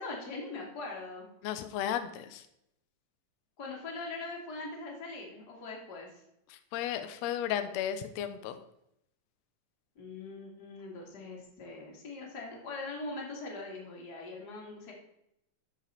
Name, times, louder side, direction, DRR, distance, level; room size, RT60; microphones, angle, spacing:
voice 1, 0.0-1.3 3.6-6.2 10.0-14.9, left 3 dB, 35° left, -1 dB, 2.3 m, -41 dB
voice 2, 1.4-2.4 6.7-8.6, left 10 dB, 75° left, 10 dB, 1.6 m, -34 dB
12.5 x 5.1 x 4.3 m, 0.78 s
omnidirectional pair, 3.9 m